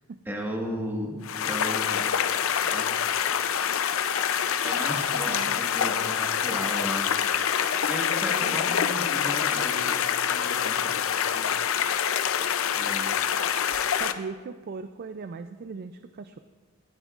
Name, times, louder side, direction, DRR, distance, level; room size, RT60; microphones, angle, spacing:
voice 1, 0.2-1.2 1.4-2.1 2.6-3.0 4.6-7.2 7.9-10.0 10.3-11.5 12.8-13.2, equal, 10° right, -1 dB, 1.5 m, -35 dB
sound 1, 1.2-14.1, left 8 dB, 90° left, 0.5 m, -26 dB
voice 2, 5.2-5.6 8.4-8.8 13.9-16.4, right 4 dB, 50° right, 9 dB, 0.3 m, -39 dB
18.0 x 9.0 x 2.4 m, 1.4 s
head